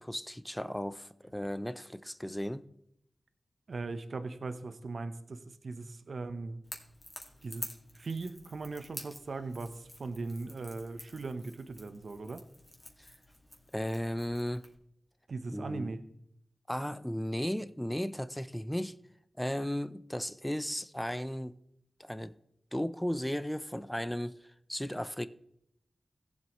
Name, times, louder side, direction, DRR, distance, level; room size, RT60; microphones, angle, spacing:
voice 1, 0.0-2.6 13.0-13.1 13.7-14.6 15.5-15.9 16.7-18.9 19.4-21.6 22.0-22.3 22.7-24.3 24.7-25.3, equal, 5° left, 0.5 m, -35 dB
voice 2, 3.7-6.6 7.4-12.4 15.3-16.0, right 3 dB, 70° right, 0.8 m, -39 dB
Crackle / Crack, 6.6-14.8, left 1 dB, 25° left, 2.1 m, -49 dB
16.5 x 7.6 x 3.1 m
cardioid pair, 55°, 0 cm